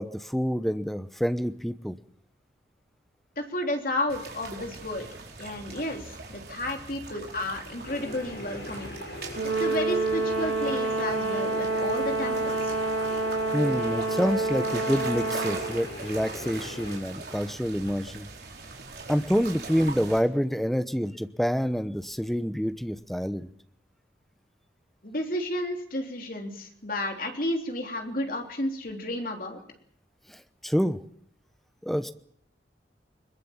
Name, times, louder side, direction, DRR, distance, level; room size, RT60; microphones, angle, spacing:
voice 1, 0.0-1.9 13.5-18.3 19.1-23.5 30.3-31.0 31.8-32.1, equal, ahead, 11 dB, 0.9 m, -27 dB
voice 2, 3.4-5.1 5.4-8.9 9.6-12.8 25.0-29.6, left 1 dB, 50° left, 3 dB, 3.4 m, -32 dB
sound 1, 4.1-20.2, right 3 dB, 60° right, 4.6 m, -41 dB
sound 2, 7.8-17.0, left 2 dB, 85° left, 5.9 m, -41 dB
Brass instrument, 9.4-15.7, right 3 dB, 85° right, 3.3 m, -28 dB
21.5 x 21.0 x 7.3 m, 0.67 s
head